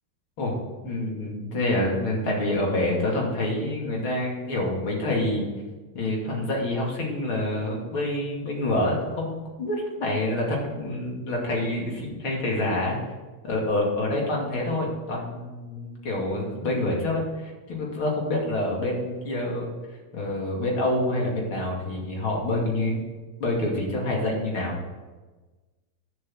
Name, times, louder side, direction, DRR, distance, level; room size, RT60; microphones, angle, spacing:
voice 1, 0.8-5.4 5.9-13.0 13.4-19.7 20.1-23.0 23.4-24.8, left 1 dB, 70° left, -2 dB, 3.4 m, -27 dB
10.5 x 7.5 x 7.6 m, 1.3 s
omnidirectional pair, 2.4 m